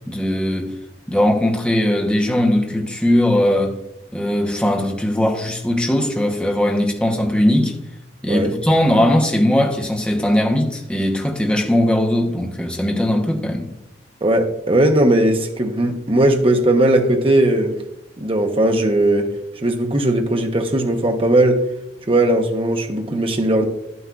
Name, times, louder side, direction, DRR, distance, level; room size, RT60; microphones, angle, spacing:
voice 1, 0.1-0.7 1.1-3.8 4.1-7.8 8.2-13.7, left 1 dB, 5° left, 1.0 m, -19 dB
voice 2, 14.2-17.8 18.2-19.4 19.6-21.7 22.1-23.6, right 1 dB, 30° right, 0.9 m, -18 dB
11.0 x 9.4 x 2.5 m
head